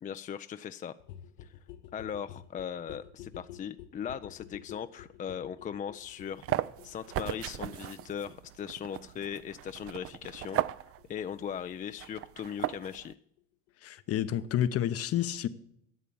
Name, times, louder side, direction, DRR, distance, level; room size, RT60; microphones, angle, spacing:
voice 1, 0.0-1.0 1.4-1.5 1.9-13.2, left 8 dB, 25° left, 0.4 m, -39 dB
sound 1, 1.0-12.5 12.8-12.9 13.1-13.2 13.4-13.5 13.7-13.8 14.0-14.1 14.3-14.4, left 11 dB, 70° left, 1.0 m, -51 dB
sound 2, 6.0-13.1, right 13 dB, 50° right, 0.5 m, -37 dB
voice 2, 13.8-15.5, left 11 dB, 50° left, 0.8 m, -29 dB
11.0 x 7.3 x 8.5 m
supercardioid pair, 85°, 31 cm